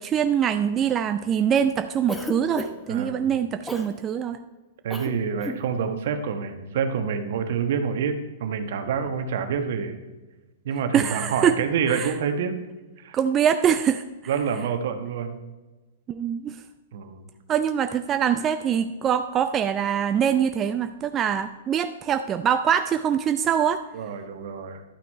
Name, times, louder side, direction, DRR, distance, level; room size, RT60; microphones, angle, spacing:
voice 1, 0.0-4.4 10.9-11.5 11.9-12.1 13.1-14.0 16.1-16.6 17.5-23.8, right 8 dB, 25° right, 9 dB, 0.4 m, -23 dB
Cough, 2.1-2.9 3.7-3.9 4.9-5.1 5.4-5.6, left 1 dB, 5° left, 1.0 m, -32 dB
voice 2, 2.9-3.3 4.8-10.0 10.6-12.6 13.0-13.2 14.3-15.4 16.9-17.3 23.9-24.8, right 6 dB, 60° right, 8 dB, 1.1 m, -27 dB
11.5 x 6.0 x 4.6 m, 1.2 s
hypercardioid pair, 120°, 0 cm